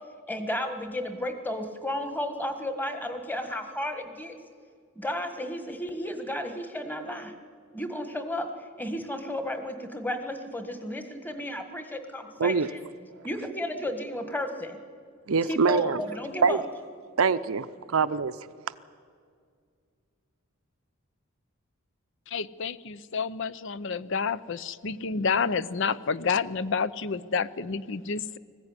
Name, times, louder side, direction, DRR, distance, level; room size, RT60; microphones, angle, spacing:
voice 1, 0.3-4.4 5.0-7.3 7.7-8.5 8.8-12.8 13.2-14.8 15.5-16.6, left 1 dB, 10° left, 7 dB, 1.5 m, -33 dB
voice 2, 15.3-16.0 16.4-16.6 17.2-18.3, right 5 dB, 85° right, 13 dB, 0.7 m, -24 dB
voice 3, 22.3-28.4, left 5 dB, 65° left, 17 dB, 0.6 m, -29 dB
20.0 x 15.0 x 9.8 m, 2.1 s
head